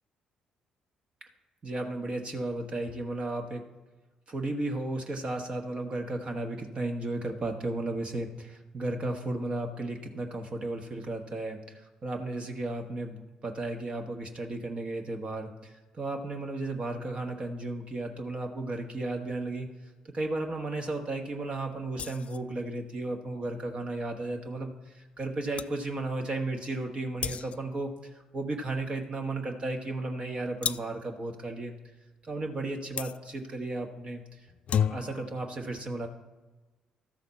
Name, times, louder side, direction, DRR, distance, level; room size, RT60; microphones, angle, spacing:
voice 1, 1.6-3.6 4.3-19.7 20.1-31.7 32.2-34.4 34.9-36.1, right 2 dB, 40° right, 3 dB, 1.2 m, -34 dB
sound 1, 22.0-22.5 25.2-25.3 25.6-25.8 27.2-27.8 30.6-31.1 33.0-33.2 34.5-35.3, left 8 dB, 50° left, 0.3 m, -32 dB
13.0 x 6.5 x 4.2 m, 1.2 s
hypercardioid pair, 45°, 3 cm